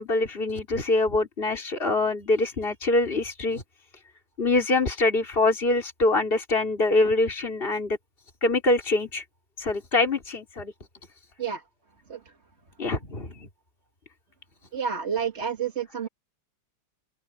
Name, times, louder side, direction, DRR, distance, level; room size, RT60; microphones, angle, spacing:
voice 1, 0.0-3.6 4.4-8.0 8.4-9.2 9.6-10.7 12.8-13.5, left 2 dB, 30° left, 3.7 m, -24 dB
voice 2, 14.7-16.1, right 7 dB, 35° right, 2.0 m, -29 dB
open air
omnidirectional pair, 2.0 m